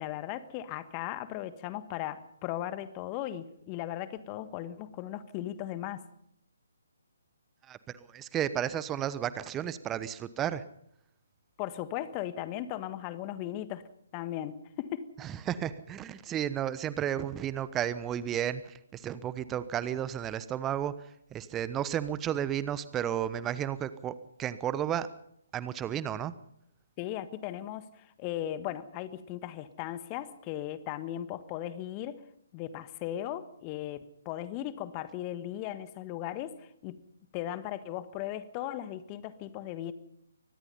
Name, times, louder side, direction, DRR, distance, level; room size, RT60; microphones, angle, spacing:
voice 1, 0.0-6.0 11.6-13.8 14.1-15.1 27.0-32.2 32.5-37.0 37.3-39.9, left 12 dB, 25° left, 13 dB, 1.4 m, -37 dB
voice 2, 7.7-10.6 15.2-20.9 21.3-24.1 24.4-25.1 25.5-26.3, right 10 dB, 15° right, 15 dB, 1.0 m, -33 dB
24.5 x 19.5 x 5.5 m, 0.73 s
figure-of-eight pair, 140°, 0 cm